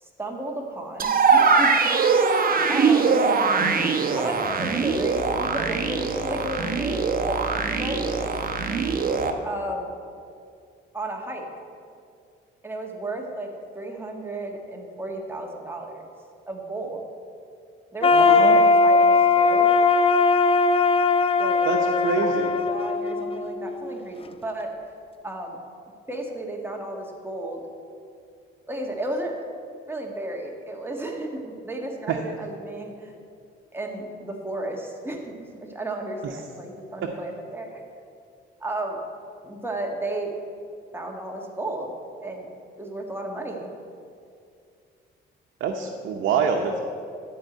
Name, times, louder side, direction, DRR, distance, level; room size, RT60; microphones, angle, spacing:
voice 1, 0.0-3.2 4.2-8.3 9.4-9.9 10.9-11.5 12.6-16.0 16.5-17.0 17.9-19.7 21.4-24.7 25.2-25.6 26.1-27.7 28.7-29.4 29.9-33.1 33.7-37.8 38.6-39.0 39.4-40.4 40.9-41.9 42.2-43.7, right 2 dB, 10° right, 1 dB, 1.7 m, -33 dB
sound 1, 1.0-9.3, right 5 dB, 45° right, 1.0 m, -22 dB
sound 2, 18.0-23.9, left 4 dB, 30° left, 0.5 m, -19 dB
voice 2, 18.1-18.6 21.7-22.5 32.1-32.2 45.6-46.8, right 6 dB, 80° right, 2 dB, 0.8 m, -25 dB
12.0 x 4.8 x 7.9 m, 2.3 s
cardioid pair, 90°, 20 cm